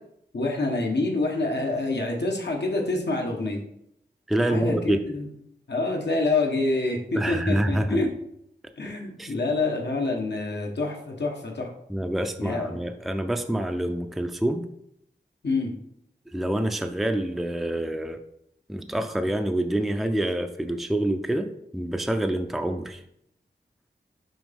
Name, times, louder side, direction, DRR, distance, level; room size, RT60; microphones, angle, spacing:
voice 1, 0.3-3.6 4.4-5.3 5.7-8.1 8.8-11.7 12.4-12.8 15.4-15.7, left 2 dB, 75° left, 1 dB, 1.2 m, -27 dB
voice 2, 4.3-5.1 7.1-8.0 9.2-9.3 11.9-14.6 16.3-18.2 18.7-23.0, right 1 dB, ahead, 6 dB, 0.4 m, -26 dB
6.1 x 4.6 x 3.5 m, 0.74 s
wide cardioid pair, 70°, 18 cm